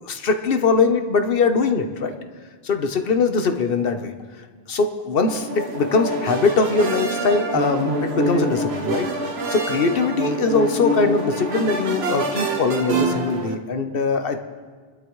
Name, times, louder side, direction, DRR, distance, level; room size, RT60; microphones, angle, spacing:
voice 1, 0.0-2.1 2.6-4.1 4.7-9.1 9.5-14.4, left 4 dB, 65° left, 6 dB, 1.2 m, -21 dB
sound 1, 5.3-13.6, right 2 dB, 75° right, 1.3 m, -26 dB
28.5 x 12.5 x 3.2 m, 1.5 s
omnidirectional pair, 1.1 m